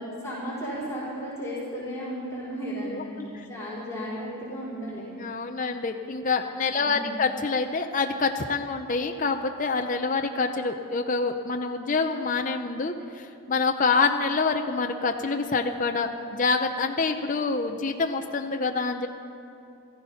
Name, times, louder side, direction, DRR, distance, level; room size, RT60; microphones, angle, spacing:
voice 1, 0.0-5.0 6.7-7.2, equal, 15° left, -10 dB, 4.5 m, -34 dB
voice 2, 2.9-3.5 5.1-19.1, left 4 dB, 35° left, 5 dB, 0.6 m, -26 dB
14.5 x 14.5 x 5.6 m, 2.7 s
head